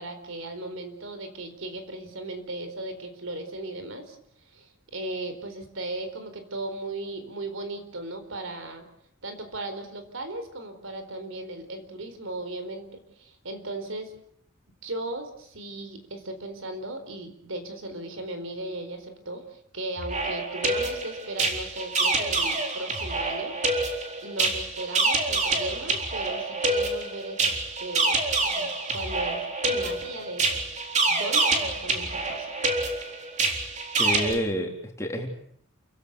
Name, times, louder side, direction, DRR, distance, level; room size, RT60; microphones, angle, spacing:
voice 1, 0.0-8.8 9.2-14.1 14.8-23.5 24.2-30.6 31.1-32.5, right 2 dB, 70° right, 8 dB, 4.4 m, -37 dB
sound 1, 20.0-34.3, right 3 dB, 35° right, 4.0 m, -27 dB
voice 2, 34.0-35.3, equal, 15° left, 2 dB, 3.7 m, -29 dB
29.5 x 16.5 x 8.3 m, 0.69 s
head